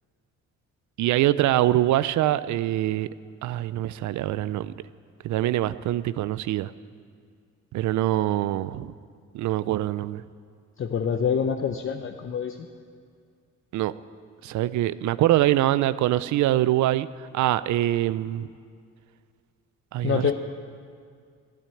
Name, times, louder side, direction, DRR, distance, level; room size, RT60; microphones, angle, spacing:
voice 1, 1.0-3.1 3.4-4.7 5.2-6.7 7.7-8.9 9.3-10.2 13.7-13.9 14.4-17.1 17.3-18.5 19.9-20.2, right 14 dB, 70° right, 15 dB, 0.5 m, -24 dB
voice 2, 10.8-12.6 20.0-20.3, left 7 dB, 45° left, 4 dB, 0.8 m, -26 dB
13.0 x 9.2 x 8.4 m, 2.2 s
cardioid pair, 90°, 30 cm